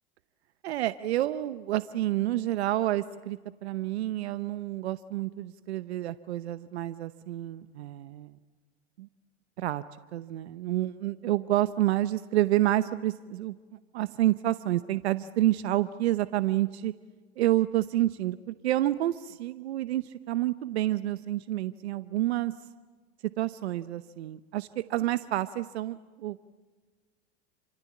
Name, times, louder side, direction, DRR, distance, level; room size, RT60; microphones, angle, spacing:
voice 1, 0.6-8.3 9.0-9.1 9.6-9.8 10.1-13.6 13.9-16.9 17.4-22.5 23.4-26.5, right 14 dB, 80° right, 15 dB, 0.9 m, -29 dB
27.5 x 25.5 x 8.4 m, 1.4 s
hypercardioid pair, 95°, 32 cm